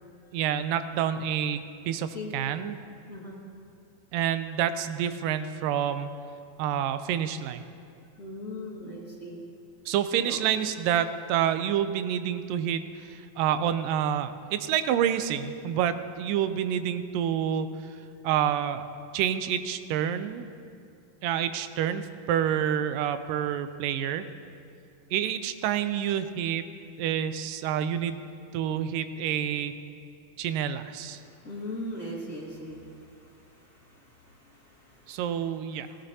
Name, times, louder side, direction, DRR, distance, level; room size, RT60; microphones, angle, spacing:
voice 1, 0.3-2.8 4.1-6.1 6.6-7.6 9.9-17.7 18.2-18.8 19.1-20.5 21.2-24.3 25.1-26.6 27.0-28.2 28.5-29.7 30.4-31.2 35.1-35.9, right 9 dB, 90° right, 11 dB, 2.3 m, -28 dB
voice 2, 3.1-3.4 8.2-9.4 10.2-10.4 31.2-35.2 35.8-36.0, left 1 dB, 30° left, -6 dB, 1.8 m, -40 dB
18.5 x 17.0 x 2.8 m, 2.4 s
omnidirectional pair, 3.8 m